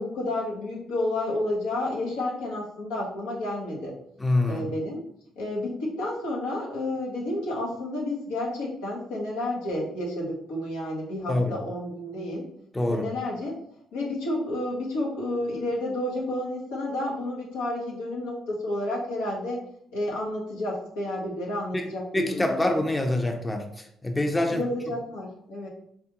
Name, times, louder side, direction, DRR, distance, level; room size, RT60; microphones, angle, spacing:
voice 1, 0.0-3.9 4.4-5.0 5.4-12.5 12.9-13.5 13.9-19.6 19.9-22.6 24.5-25.7, left 1 dB, 85° left, -3 dB, 0.9 m, -30 dB
voice 2, 4.2-4.6 11.3-11.5 12.7-13.1 21.7-21.9 22.1-24.6, left 1 dB, 15° left, 3 dB, 0.5 m, -25 dB
3.5 x 2.3 x 2.9 m, 0.70 s
hypercardioid pair, 50°, 0 cm